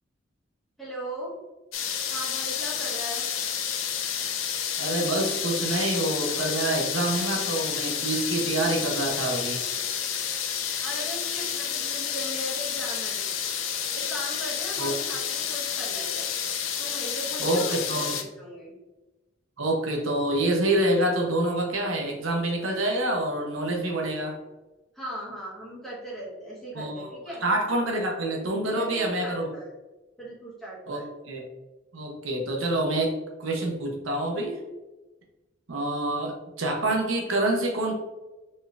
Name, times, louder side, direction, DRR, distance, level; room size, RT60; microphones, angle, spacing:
voice 1, 0.8-1.3 2.1-3.2 10.8-13.2 13.9-16.3 16.8-18.7 24.9-27.4 28.7-29.7 30.2-31.1, right 1 dB, ahead, -7 dB, 1.3 m, -38 dB
sound 1, 1.7-18.2, left 8 dB, 90° left, 0.6 m, -30 dB
voice 2, 4.8-9.6 14.8-14.9 17.4-18.2 19.6-24.4 26.7-27.1 27.4-29.5 30.9-31.4 31.9-34.6 35.7-37.9, right 1 dB, 85° right, 0 dB, 0.9 m, -27 dB
4.2 x 3.3 x 2.5 m, 1.1 s
head